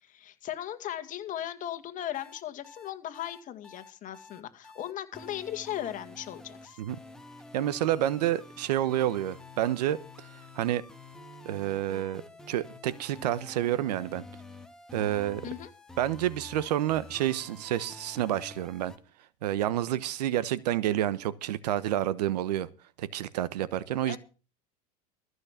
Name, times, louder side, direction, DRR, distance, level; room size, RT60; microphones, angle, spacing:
voice 1, 0.0-6.8 15.4-15.7 24.1-24.2, left 11 dB, 40° left, 2.1 m, -37 dB
sound 1, 2.1-19.0, left 2 dB, 5° left, 1.8 m, -49 dB
voice 2, 7.5-10.0 10.5-10.9 11.4-12.2 12.5-14.2 14.9-15.4 16.0-18.9 19.4-22.7 23.0-24.2, right 12 dB, 90° right, 1.1 m, -29 dB
14.5 x 6.4 x 7.5 m
supercardioid pair, 115°, 20 cm